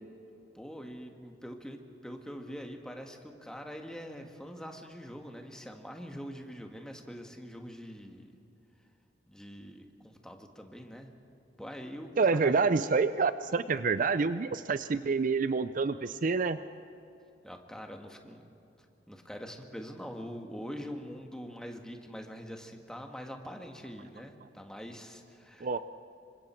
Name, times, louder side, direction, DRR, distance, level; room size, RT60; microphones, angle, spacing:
voice 1, 0.5-8.3 9.3-11.1 11.6-12.1 12.4-12.5 17.4-18.4 19.1-25.7, equal, 5° left, 3 dB, 1.6 m, -44 dB
voice 2, 12.2-16.6 25.6-25.8, right 4 dB, 50° right, 12 dB, 0.5 m, -27 dB
27.0 x 24.5 x 4.5 m, 2.8 s
head